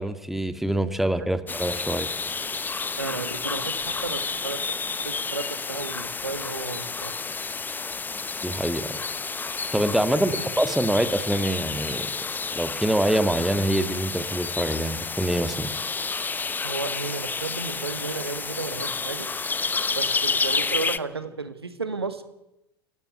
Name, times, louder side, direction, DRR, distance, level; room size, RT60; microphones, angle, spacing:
voice 1, 0.0-2.1 8.4-9.0 9.7-12.1 12.5-15.7, right 1 dB, ahead, 11 dB, 1.8 m, -25 dB
sound 1, 1.5-21.0, left 4 dB, 15° left, 1.0 m, -30 dB
voice 2, 3.0-7.1 10.1-10.4 16.6-19.3 20.0-22.2, right 4 dB, 80° right, 11 dB, 2.0 m, -33 dB
28.5 x 17.5 x 9.3 m, 0.92 s
figure-of-eight pair, 80°, 13 cm